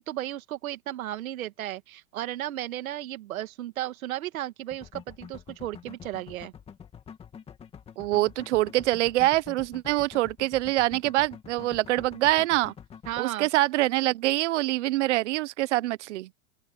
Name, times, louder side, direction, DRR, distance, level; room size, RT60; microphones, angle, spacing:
voice 1, 0.0-6.5 13.1-13.5, right 13 dB, 70° right, 2.3 m, -34 dB
sound 1, 4.7-13.2, left 7 dB, 15° left, 1.9 m, -46 dB
voice 2, 8.0-12.7 13.2-16.3, right 17 dB, 55° right, 0.8 m, -25 dB
open air
supercardioid pair, 160°, 43 cm